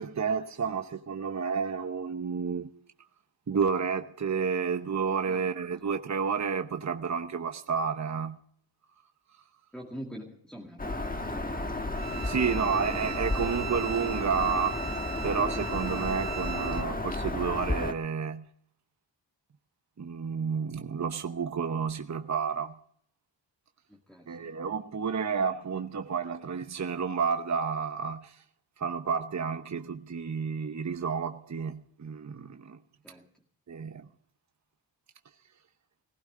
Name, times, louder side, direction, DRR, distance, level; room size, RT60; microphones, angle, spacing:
voice 1, 0.0-2.7 3.5-8.4 12.2-14.8 15.2-18.5 20.0-22.8 24.3-28.4 28.8-32.8 33.7-34.1, right 6 dB, 35° right, 0.9 m, -30 dB
voice 2, 5.3-5.8 9.7-11.8 12.2-13.6 23.9-24.6 33.0-33.3, equal, ahead, 2.0 m, -45 dB
Bird vocalization bird call bird song, 10.8-17.9, left 2 dB, 20° left, 1.3 m, -32 dB
Bowed string instrument, 11.9-16.9, right 9 dB, 65° right, 1.6 m, -39 dB
18.5 x 16.0 x 3.7 m
cardioid pair, 65°, 46 cm